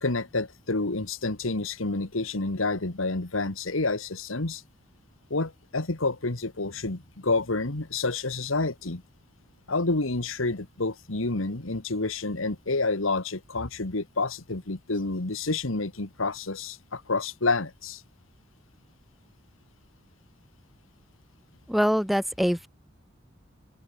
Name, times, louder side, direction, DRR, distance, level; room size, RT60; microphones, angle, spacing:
voice 1, 0.0-4.6 5.3-9.0 9.7-18.0, left 3 dB, 80° left, 1.8 m, -29 dB
voice 2, 21.7-22.7, equal, ahead, 0.4 m, -24 dB
open air
head